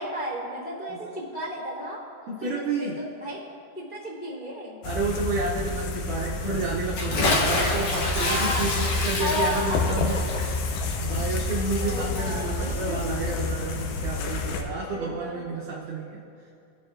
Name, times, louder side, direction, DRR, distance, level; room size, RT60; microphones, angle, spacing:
voice 1, 0.0-2.0 2.4-3.4 3.7-4.8 8.1-8.7 9.2-10.4 11.8-13.5 14.2-14.3 14.8-15.5, equal, 15° left, -8 dB, 1.9 m, -33 dB
voice 2, 2.3-3.0 4.8-10.2 11.0-16.2, right 3 dB, 80° right, -4 dB, 1.9 m, -30 dB
sound 1, 4.8-14.6, left 3 dB, 80° left, 2.3 m, -29 dB
Bathtub (filling or washing) / Splash splatter, 6.9-13.5, left 2 dB, 65° left, 1.9 m, -29 dB
18.0 x 7.0 x 2.5 m, 2.5 s
omnidirectional pair, 4.5 m